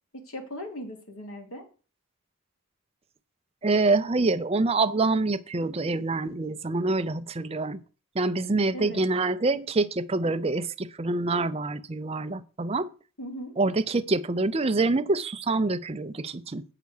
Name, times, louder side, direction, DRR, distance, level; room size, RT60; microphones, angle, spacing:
voice 1, 0.2-1.6 8.7-9.0 13.2-13.5, equal, 75° left, 2.6 m, -38 dB
voice 2, 3.6-7.8 8.2-12.9 13.6-16.6, right 3 dB, 25° right, 0.5 m, -26 dB
8.2 x 5.8 x 6.5 m
head